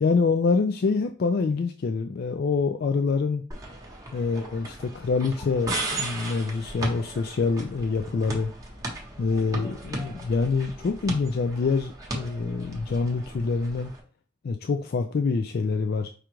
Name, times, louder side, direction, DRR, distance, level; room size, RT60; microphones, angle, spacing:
voice 1, 0.0-3.4 4.1-8.5 9.2-13.9 14.4-16.1, left 4 dB, 50° left, 0.3 m, -26 dB
sound 1, 3.5-14.0, right 2 dB, 15° right, 1.0 m, -36 dB
4.9 x 2.4 x 4.5 m
head